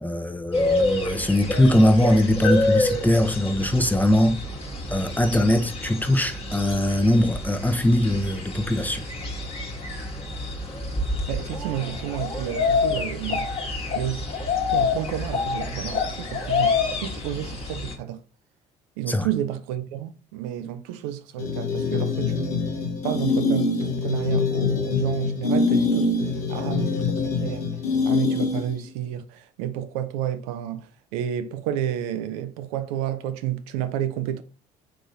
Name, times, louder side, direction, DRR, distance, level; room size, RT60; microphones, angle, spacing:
voice 1, 0.0-4.4 4.9-9.0 19.1-19.3, left 1 dB, 10° left, 0.7 m, -21 dB
sound 1, 0.5-17.9, left 3 dB, 30° left, 1.3 m, -27 dB
voice 2, 11.3-13.5 13.9-14.3 14.7-16.7 17.0-18.2 19.0-22.5 23.0-26.2 26.5-27.7 28.0-34.4, right 11 dB, 70° right, 0.5 m, -30 dB
sound 2, 21.4-28.9, left 4 dB, 80° left, 0.8 m, -24 dB
4.7 x 3.6 x 2.7 m
figure-of-eight pair, 50°, 20 cm